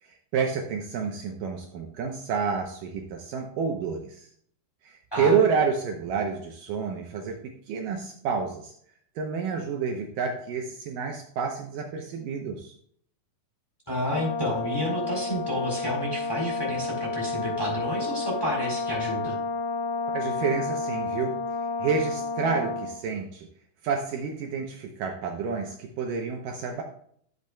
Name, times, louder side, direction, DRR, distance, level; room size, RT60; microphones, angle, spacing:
voice 1, 0.0-4.3 4.8-8.7 9.2-12.7 20.1-21.4 21.8-23.5 23.8-26.8, right 6 dB, 70° right, 2 dB, 2.3 m, -29 dB
voice 2, 13.9-19.4, equal, 5° left, -3 dB, 3.2 m, -30 dB
Brass instrument, 14.1-23.0, left 3 dB, 90° left, 1.3 m, -31 dB
12.5 x 7.9 x 2.3 m, 0.63 s
omnidirectional pair, 4.3 m